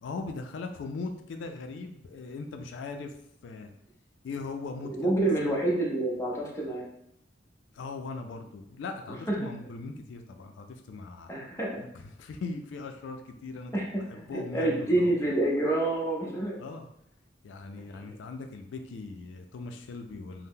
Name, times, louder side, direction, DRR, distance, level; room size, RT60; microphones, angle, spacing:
voice 1, 0.0-3.1 3.4-3.7 4.2-5.1 5.4-5.6 7.7-11.4 11.9-13.7 14.0-15.1 16.6-16.9 17.4-20.5, left 3 dB, 90° left, 5 dB, 0.3 m, -39 dB
voice 2, 4.9-6.9 9.3-9.5 11.3-11.8 13.7-16.6 17.8-18.0, right 2 dB, 15° left, -3 dB, 0.6 m, -28 dB
2.7 x 2.0 x 3.5 m, 0.76 s
head